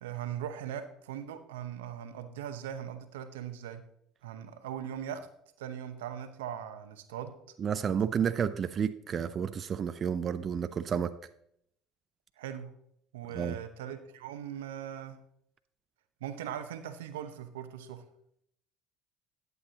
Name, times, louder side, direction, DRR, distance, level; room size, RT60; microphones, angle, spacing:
voice 1, 0.0-3.8 4.2-5.2 5.6-7.3 12.4-12.7 13.1-15.2 16.2-18.0, right 9 dB, 90° right, 9 dB, 0.8 m, -40 dB
voice 2, 7.6-11.1 13.3-13.6, right 7 dB, 40° right, 11 dB, 0.5 m, -31 dB
11.5 x 8.0 x 2.8 m, 0.71 s
supercardioid pair, 85°, 0 cm